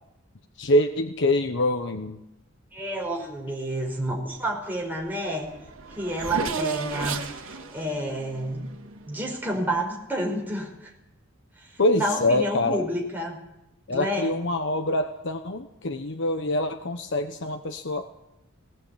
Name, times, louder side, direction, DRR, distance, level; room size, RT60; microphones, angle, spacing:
voice 1, 0.6-2.2 11.8-12.8 13.9-18.2, left 1 dB, 60° left, 6 dB, 1.1 m, -25 dB
voice 2, 2.7-5.5 6.0-8.6 9.1-10.9 11.6-13.4 13.9-14.3, right 1 dB, 10° right, -1 dB, 5.1 m, -30 dB
Race car auto racing / Accelerating revving vroom, 5.1-5.2 5.4-9.4, right 4 dB, 80° right, 2.2 m, -34 dB
18.0 x 18.0 x 8.5 m, 0.89 s
head